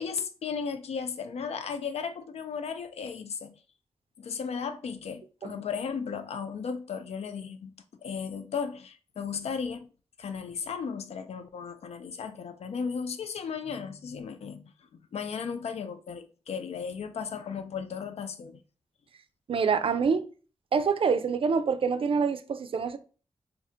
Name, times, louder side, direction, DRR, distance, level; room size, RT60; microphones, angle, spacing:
voice 1, 0.0-3.5 4.2-7.7 8.0-9.9 10.2-18.6, left 6 dB, 75° left, 0.4 m, -35 dB
voice 2, 19.5-20.2 20.7-23.0, right 5 dB, 60° right, 0.4 m, -26 dB
2.7 x 2.1 x 3.7 m
cardioid pair, 60°, 11 cm